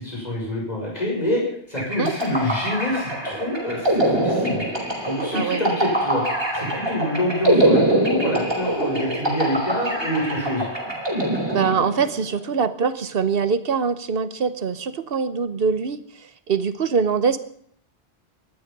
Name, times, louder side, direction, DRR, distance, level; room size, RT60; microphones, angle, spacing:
voice 1, 0.0-1.4 1.7-4.7 5.0-6.2 6.5-10.7, left 1 dB, 40° left, -3 dB, 6.4 m, -26 dB
sound 1, 1.8-12.2, right 1 dB, 25° right, 4.8 m, -23 dB
voice 2, 11.5-17.4, right 6 dB, 60° right, 12 dB, 1.2 m, -23 dB
19.0 x 12.5 x 5.4 m, 0.64 s
omnidirectional pair, 1.1 m